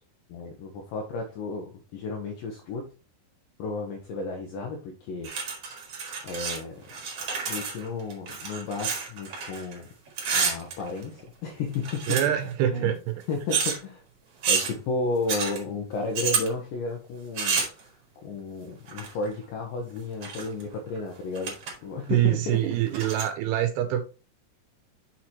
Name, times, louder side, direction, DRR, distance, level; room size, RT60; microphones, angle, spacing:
voice 1, 0.3-2.9 3.6-5.3 6.2-6.8 7.5-9.9 10.3-12.2 12.7-13.0 13.3-14.0 14.5-21.6 21.8-22.7, left 3 dB, 75° left, 2.3 m, -33 dB
sound 1, 5.2-6.6 6.8-9.8 10.1-11.3 11.7-12.5 13.5-13.8 14.4-14.7 15.3-15.6 16.1-16.5 17.4-17.8 18.9-19.3 20.0-20.6 21.0-21.1 21.4-21.7 22.1-22.2 22.9-23.3, right 5 dB, 50° right, 1.9 m, -29 dB
voice 2, 12.1-13.2 22.1-24.0, right 12 dB, 85° right, 2.6 m, -25 dB
6.4 x 5.8 x 3.1 m
omnidirectional pair, 4.8 m